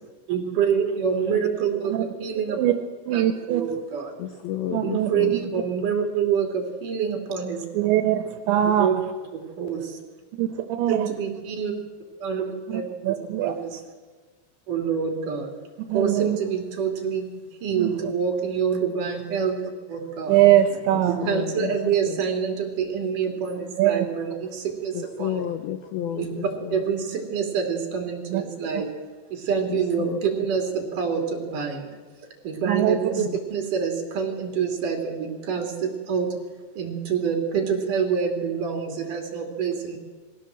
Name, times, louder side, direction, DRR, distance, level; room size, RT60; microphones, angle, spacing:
voice 1, 0.3-2.6 3.1-3.2 3.5-4.1 4.8-7.7 8.8-8.9 9.3-10.0 10.9-11.7 12.2-13.8 14.7-15.5 15.9-17.3 17.6-20.4 21.1-25.4 26.2-28.9 29.3-31.9 32.4-33.2 33.5-36.3 36.8-40.0, right 6 dB, 50° right, 3 dB, 4.0 m, -26 dB
voice 2, 3.1-3.6 4.7-5.3 7.7-8.9 10.4-11.1 12.7-13.5 15.9-16.4 17.8-18.1 20.3-21.2 23.8-24.0 28.3-28.4 32.7-33.3, right 12 dB, 80° right, 7 dB, 3.1 m, -22 dB
voice 3, 4.2-5.3 20.9-21.7 22.1-22.2 24.9-26.8 29.7-30.2 32.9-33.4, left 10 dB, 90° left, 8 dB, 2.1 m, -32 dB
21.5 x 16.0 x 7.6 m, 1.4 s
omnidirectional pair, 5.3 m